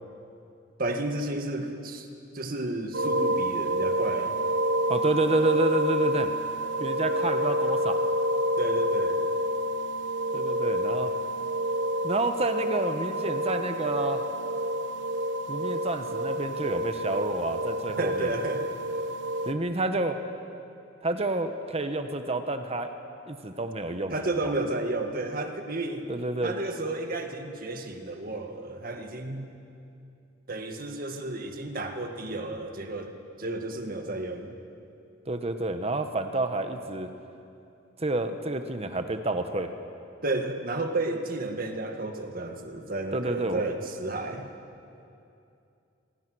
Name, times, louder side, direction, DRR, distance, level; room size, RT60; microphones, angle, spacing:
voice 1, 0.8-2.1 2.3-4.4 8.6-9.2 18.0-18.7 24.1-26.1 26.4-29.5 30.5-34.5 40.2-44.5, right 2 dB, 50° right, 5 dB, 1.8 m, -32 dB
Aud Crystal pyramidmid pure tone, 2.9-19.5, equal, 70° right, 1.1 m, -28 dB
voice 2, 4.9-6.3 6.8-8.0 10.3-11.1 12.0-14.2 15.5-18.3 19.4-20.2 21.0-22.9 23.3-24.1 24.4-24.5 26.1-26.5 35.3-37.1 38.0-39.7 43.1-43.6, right 2 dB, 35° right, 7 dB, 1.1 m, -29 dB
26.0 x 21.0 x 6.2 m, 2.6 s
head